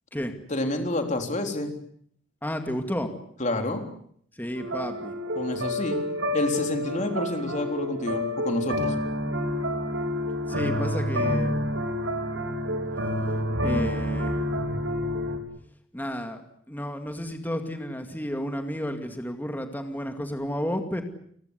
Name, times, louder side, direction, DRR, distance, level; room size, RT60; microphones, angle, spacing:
voice 1, 0.5-1.7 3.4-3.8 5.4-6.0 6.3-8.9, left 1 dB, 40° left, 5 dB, 3.9 m, -28 dB
voice 2, 2.4-3.1 4.4-5.1 10.5-11.6 13.6-14.4 15.9-16.4 16.7-21.0, equal, 10° left, 6 dB, 2.3 m, -31 dB
sound 1, 4.6-15.4, equal, 80° right, 4.6 m, -28 dB
30.0 x 19.5 x 8.3 m, 0.64 s
head